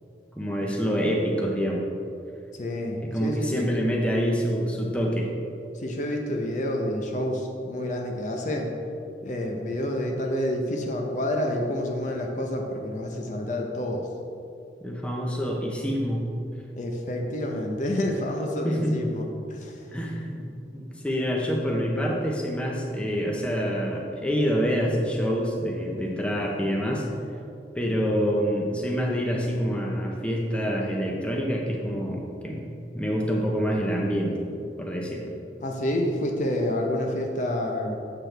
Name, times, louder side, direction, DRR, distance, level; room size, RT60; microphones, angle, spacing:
voice 1, 0.3-1.8 3.0-5.3 14.8-16.2 18.6-18.9 19.9-27.1 27.7-32.7 32.9-34.4 34.8-35.4, equal, 5° left, -1 dB, 0.7 m, -26 dB
voice 2, 2.5-3.7 5.7-8.7 9.2-14.1 16.7-19.8 35.6-38.0, left 1 dB, 45° left, 1 dB, 0.7 m, -28 dB
7.7 x 6.8 x 3.3 m, 2.6 s
head